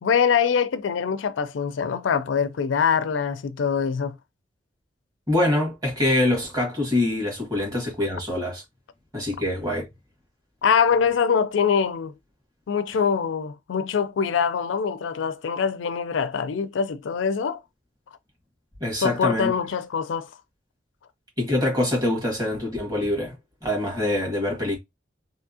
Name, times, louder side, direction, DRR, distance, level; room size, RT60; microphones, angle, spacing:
voice 1, 0.0-4.2 10.6-12.1 12.7-17.6 19.0-20.3, left 6 dB, 85° left, 0.4 m, -23 dB
voice 2, 5.3-8.6 9.1-9.9 18.8-19.5 21.4-23.3 23.6-24.8, left 1 dB, 20° right, 1.7 m, -24 dB
3.5 x 2.7 x 2.7 m
head